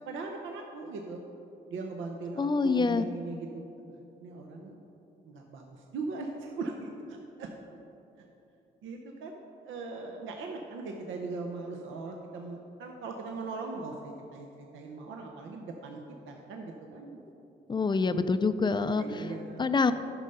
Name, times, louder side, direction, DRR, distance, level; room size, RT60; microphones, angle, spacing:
voice 1, 0.1-1.2 1.7-3.6 3.9-4.8 5.2-7.5 8.8-16.0 16.3-17.2 19.0-19.6, right 3 dB, 80° right, 2 dB, 0.7 m, -39 dB
voice 2, 2.4-3.1 17.7-19.3 19.6-19.9, left 4 dB, 25° left, 11 dB, 0.4 m, -26 dB
9.9 x 5.5 x 5.4 m, 2.9 s
cardioid pair, 90°, 20 cm